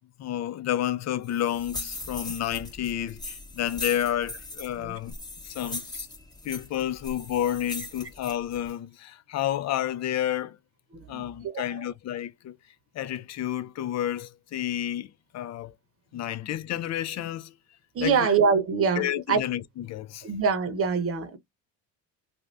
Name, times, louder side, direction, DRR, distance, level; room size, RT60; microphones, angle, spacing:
voice 1, 0.2-5.2 5.4-6.1 6.4-10.6 11.1-12.6 12.9-15.7 16.1-17.5 18.0-18.3 19.0-20.3, left 11 dB, 45° left, 0.5 m, -30 dB
sound 1, 1.2-8.7, left 2 dB, 10° left, 0.9 m, -39 dB
voice 2, 10.9-11.9 17.9-19.4 20.2-21.4, right 5 dB, 35° right, 0.9 m, -25 dB
2.6 x 2.3 x 3.3 m
supercardioid pair, 85°, 39 cm